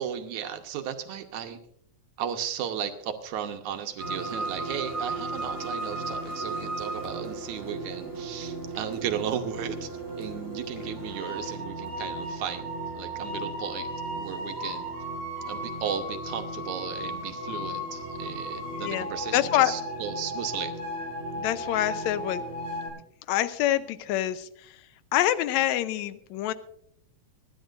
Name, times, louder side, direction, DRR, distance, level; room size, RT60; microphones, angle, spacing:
voice 1, 0.0-1.6 2.2-9.9 10.2-14.9 15.5-20.7, right 9 dB, 80° right, 6 dB, 2.4 m, -35 dB
sound 1, 4.0-22.9, right 1 dB, 25° right, 7.2 m, -35 dB
voice 2, 19.3-19.7 21.4-22.4 23.3-24.5 25.1-26.5, left 13 dB, 75° left, 12 dB, 1.9 m, -25 dB
25.0 x 11.0 x 2.5 m, 0.68 s
omnidirectional pair, 3.4 m